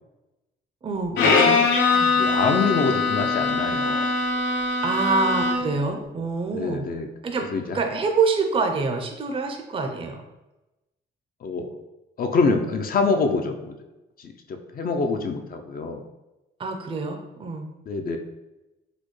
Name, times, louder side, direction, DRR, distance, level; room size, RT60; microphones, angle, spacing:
voice 1, 0.8-1.6 1.9-2.1 4.8-6.8 7.2-7.5 7.7-10.2 16.6-17.7, right 4 dB, 25° right, 3 dB, 0.5 m, -26 dB
Bowed string instrument, 1.2-5.8, left 4 dB, 80° left, 0.7 m, -22 dB
voice 2, 2.2-4.1 6.5-7.1 7.5-7.8 11.4-11.8 12.2-13.8 14.2-16.0 17.9-18.2, left 4 dB, 45° left, 5 dB, 0.5 m, -25 dB
4.1 x 2.2 x 3.1 m, 0.99 s
cardioid pair, 90°, 20 cm